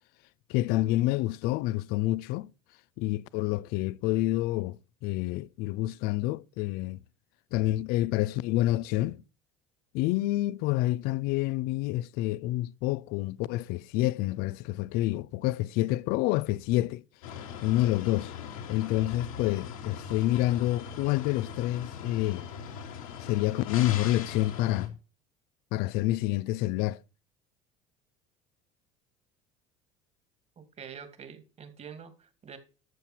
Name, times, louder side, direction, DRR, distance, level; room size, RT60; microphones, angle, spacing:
voice 1, 0.5-2.5 3.0-7.0 7.5-9.2 9.9-17.0 17.3-18.3 18.7-22.5 23.2-25.0 25.7-27.0, left 16 dB, 65° left, 0.5 m, -28 dB
sound 1, 17.2-24.9, left 7 dB, 80° left, 2.6 m, -40 dB
voice 2, 30.6-32.6, right 7 dB, 40° right, 2.5 m, -46 dB
13.0 x 6.8 x 4.5 m
hypercardioid pair, 75°, 17 cm